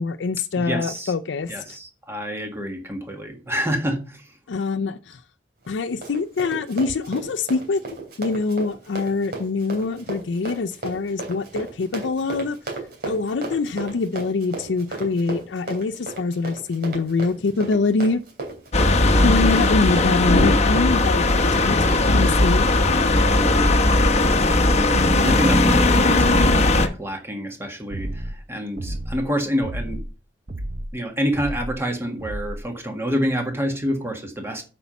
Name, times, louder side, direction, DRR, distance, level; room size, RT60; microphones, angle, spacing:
voice 1, 0.0-1.8 4.5-5.2 5.7-7.8 8.2-12.6 13.0-18.2 19.2-21.8 22.1-22.7, left 3 dB, 85° left, 0.5 m, -24 dB
voice 2, 0.6-1.1 1.5-4.3 23.2-23.7 25.0-30.0 30.9-34.6, equal, 15° right, 1.7 m, -27 dB
Run, 5.6-21.0, right 3 dB, 55° right, 3.2 m, -34 dB
sound 1, 18.7-26.9, left 2 dB, 35° left, 1.0 m, -18 dB
sound 2, 27.9-28.4 28.8-29.3 29.6-30.1 30.5-30.9 31.3-31.8 32.2-32.6, right 1 dB, 40° right, 0.7 m, -31 dB
8.3 x 5.5 x 5.8 m
head